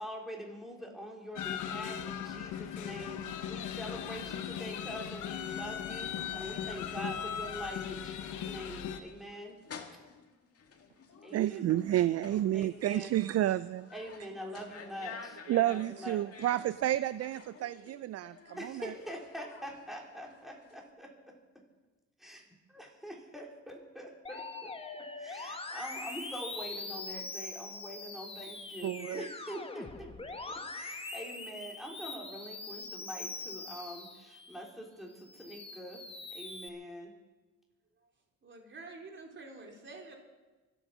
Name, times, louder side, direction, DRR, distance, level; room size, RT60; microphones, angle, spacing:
voice 1, 0.0-9.6 11.2-11.8 12.5-13.1 13.9-16.2 18.6-21.3 22.2-22.4 22.7-24.7 25.2-36.0 36.3-37.1, equal, ahead, -1 dB, 4.2 m, -44 dB
sound 1, 1.4-9.0, left 9 dB, 80° left, 1.2 m, -38 dB
sound 2, 3.8-20.9, left 5 dB, 50° left, 2.1 m, -52 dB
voice 2, 11.3-13.9 15.5-18.9 28.8-29.3, right 13 dB, 55° right, 16 dB, 0.4 m, -30 dB
Musical instrument, 24.2-34.7 35.1-36.7, left 3 dB, 20° left, 1.5 m, -43 dB
voice 3, 38.4-40.1, right 3 dB, 40° right, 1 dB, 4.0 m, -48 dB
24.0 x 9.2 x 6.1 m, 1.2 s
cardioid pair, 90°, 30 cm